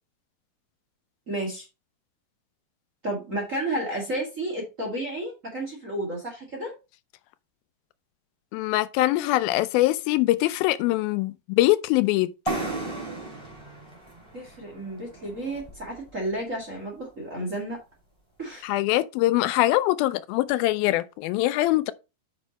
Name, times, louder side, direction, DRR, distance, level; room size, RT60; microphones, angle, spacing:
voice 1, 1.3-1.7 3.0-6.7 14.3-17.8 18.4-18.7, right 1 dB, 30° right, 1.6 m, -32 dB
voice 2, 8.5-12.3 18.6-21.9, left 17 dB, 85° left, 2.4 m, -23 dB
sound 1, 12.5-16.1, right 2 dB, 10° right, 2.5 m, -35 dB
8.3 x 5.4 x 4.1 m
omnidirectional pair, 4.2 m